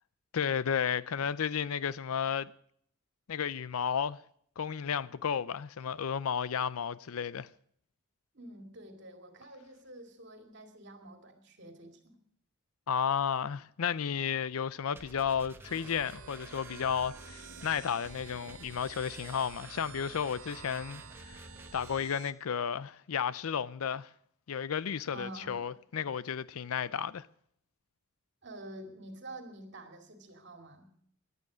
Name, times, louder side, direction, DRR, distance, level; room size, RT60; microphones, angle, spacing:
voice 1, 0.3-2.5 3.3-4.2 4.6-7.5 12.9-21.4 21.7-24.1 24.5-27.3, left 7 dB, 80° left, 0.5 m, -33 dB
voice 2, 8.3-12.2 25.1-25.7 28.4-30.9, right 1 dB, 55° right, 2.4 m, -48 dB
sound 1, 14.9-22.0, right 1 dB, 10° right, 1.0 m, -51 dB
sound 2, 15.7-22.3, right 7 dB, 75° right, 0.9 m, -50 dB
16.0 x 11.0 x 6.2 m
head